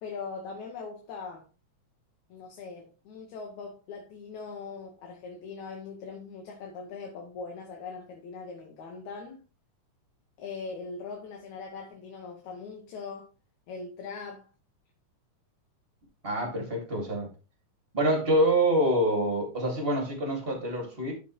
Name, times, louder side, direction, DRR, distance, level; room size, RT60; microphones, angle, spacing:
voice 1, 0.0-1.5 2.3-9.4 10.4-13.3 13.7-14.5, left 4 dB, 70° left, 2.4 m, -41 dB
voice 2, 16.2-17.3 17.9-21.1, right 1 dB, 20° right, 2.4 m, -26 dB
11.5 x 5.3 x 3.2 m
omnidirectional pair, 3.7 m